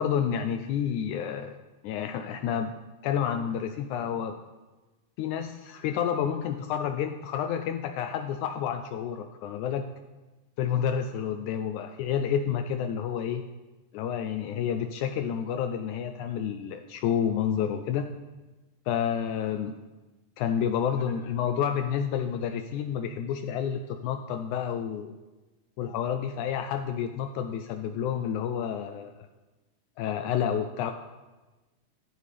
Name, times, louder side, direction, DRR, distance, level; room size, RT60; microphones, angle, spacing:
voice 1, 0.0-1.5 1.8-2.7 3.0-4.4 5.2-9.8 10.6-13.5 13.9-18.1 18.9-19.7 20.4-25.2 25.8-29.3 30.0-30.9, left 8 dB, 80° left, 7 dB, 1.9 m, -29 dB
12.5 x 10.5 x 3.4 m, 1.2 s
omnidirectional pair, 3.7 m